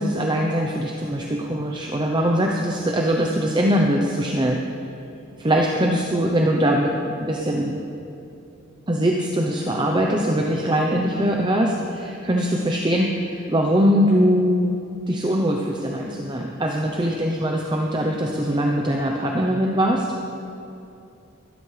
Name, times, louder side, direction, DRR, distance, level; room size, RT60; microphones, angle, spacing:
voice 1, 0.0-4.6 5.4-6.9 7.2-7.8 8.9-14.7 15.1-20.1, equal, 20° right, 0 dB, 0.7 m, -22 dB
16.0 x 12.5 x 3.3 m, 2.7 s
head